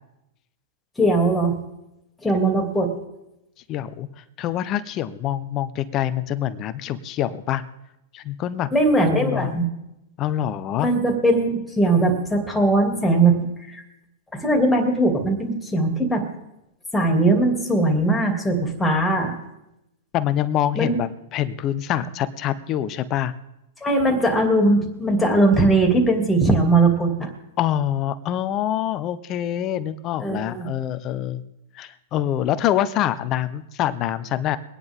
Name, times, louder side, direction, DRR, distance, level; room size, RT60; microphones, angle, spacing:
voice 1, 1.0-1.5 2.2-2.9 8.7-9.6 10.8-13.4 13.7-13.8 14.3-16.2 16.9-19.3 20.8-21.0 23.8-27.3 30.2-30.7, right 2 dB, 10° left, 2 dB, 2.7 m, -20 dB
voice 2, 3.7-7.6 8.1-8.7 9.1-9.5 10.2-10.9 20.1-23.3 27.6-31.4 31.7-34.6, left 11 dB, 35° left, 13 dB, 0.8 m, -25 dB
23.0 x 9.9 x 3.7 m, 0.89 s
hypercardioid pair, 120°, 0 cm